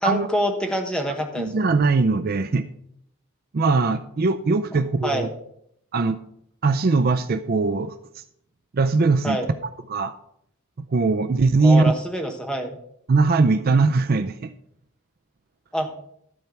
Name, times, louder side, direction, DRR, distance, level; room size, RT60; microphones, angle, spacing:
voice 1, 0.0-1.7 5.0-5.3 9.2-9.5 11.6-12.8 15.7-15.9, equal, 5° left, 4 dB, 1.2 m, -26 dB
voice 2, 1.4-2.7 3.5-5.3 5.9-6.2 6.6-8.0 8.7-9.4 9.9-10.1 10.8-11.9 13.1-14.5, right 3 dB, 45° right, 9 dB, 0.4 m, -20 dB
12.5 x 4.5 x 6.9 m, 0.72 s
head